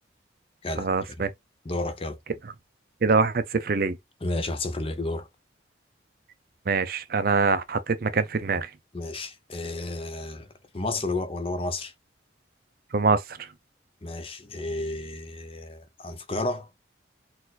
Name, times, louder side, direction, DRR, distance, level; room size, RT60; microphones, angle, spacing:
voice 1, 0.8-1.3 3.0-4.0 6.7-8.7 12.9-13.2, right 4 dB, 50° right, 0.5 m, -24 dB
voice 2, 1.6-2.2 4.2-5.3 8.9-10.5 10.7-11.9 14.0-16.7, left 2 dB, 30° left, 0.6 m, -31 dB
4.2 x 2.5 x 4.0 m
head